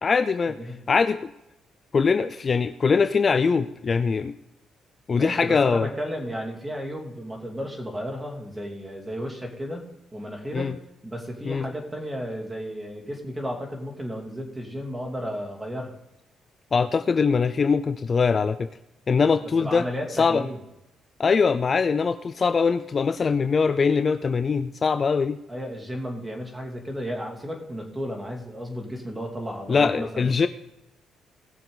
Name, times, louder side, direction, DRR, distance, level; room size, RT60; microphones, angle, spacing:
voice 1, 0.0-0.6 0.9-1.3 1.9-4.3 5.1-5.9 10.5-10.7 11.5-11.7 16.7-18.7 19.1-19.9 20.2-20.4 21.2-25.4 29.7-30.5, left 5 dB, 35° left, 11 dB, 0.5 m, -22 dB
voice 2, 5.1-9.8 10.1-10.7 11.0-15.9 19.6-20.6 25.5-30.3, equal, 15° right, 1 dB, 2.8 m, -33 dB
19.0 x 6.9 x 4.0 m, 0.90 s
cardioid pair, 110°, 0 cm